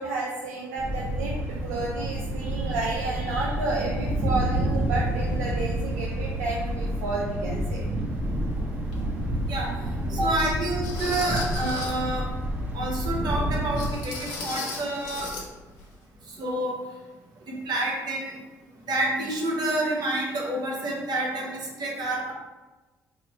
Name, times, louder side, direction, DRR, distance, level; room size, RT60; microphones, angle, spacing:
voice 1, 0.0-7.8 8.2-8.3, right 3 dB, 85° right, -4 dB, 0.4 m, -31 dB
Thunder, 0.8-13.9, right 1 dB, 25° right, 0.8 m, -29 dB
sound 1, 8.9-9.0 9.7-9.8 10.8-12.1 13.8-15.5 15.7-15.9 16.4-16.5, left 3 dB, 75° left, 0.6 m, -35 dB
voice 2, 10.1-12.3 12.7-15.3 16.4-16.8 17.5-18.4 18.9-22.3, right 1 dB, 60° right, -2 dB, 0.9 m, -28 dB
2.9 x 2.1 x 4.1 m, 1.2 s
hypercardioid pair, 45°, 8 cm